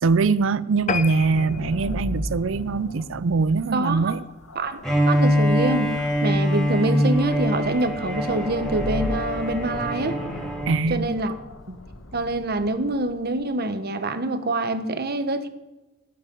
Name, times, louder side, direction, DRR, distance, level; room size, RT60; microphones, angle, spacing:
voice 1, 0.0-4.2 10.7-11.1, right 4 dB, 70° right, 0.5 m, -22 dB
sound 1, 0.8-13.4, left 1 dB, 80° left, 1.4 m, -37 dB
sound 2, 0.9-3.6 4.1-4.3 4.7-4.8 5.1-5.2 5.5-5.6, left 5 dB, 35° left, 0.8 m, -33 dB
voice 2, 3.7-4.2 4.5-4.8 5.1-5.9 6.2-10.2 10.9-11.3 11.7-11.8 12.1-15.5, right 2 dB, 50° right, 1.2 m, -25 dB
Bowed string instrument, 4.8-10.9, equal, ahead, 3.9 m, -24 dB
18.0 x 11.5 x 5.4 m
head